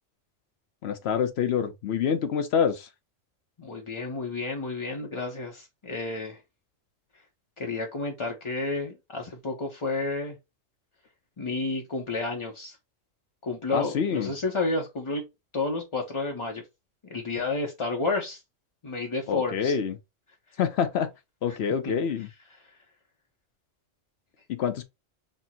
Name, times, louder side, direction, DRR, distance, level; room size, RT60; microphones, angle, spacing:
voice 1, 0.8-2.9 13.7-14.3 19.3-20.0 20.6-21.1 21.4-22.3 24.5-24.8, left 7 dB, 65° left, 0.8 m, -26 dB
voice 2, 3.6-6.4 7.1-7.2 7.6-10.4 11.4-12.8 13.4-15.3 15.5-16.6 17.1-18.4 18.8-19.8 22.6-22.8, left 3 dB, 35° left, 0.5 m, -31 dB
4.3 x 2.0 x 4.1 m
omnidirectional pair, 1.3 m